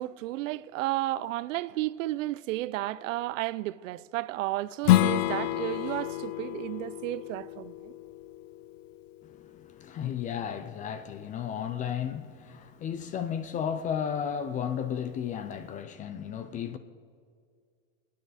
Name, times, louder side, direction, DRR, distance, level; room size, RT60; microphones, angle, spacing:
voice 1, 0.0-7.9, right 16 dB, 85° right, 0.6 m, -33 dB
Strum, 4.8-10.0, left 15 dB, 75° left, 0.6 m, -29 dB
voice 2, 9.2-16.8, left 8 dB, 20° left, 0.4 m, -34 dB
27.5 x 9.5 x 4.2 m
supercardioid pair, 140°, 38 cm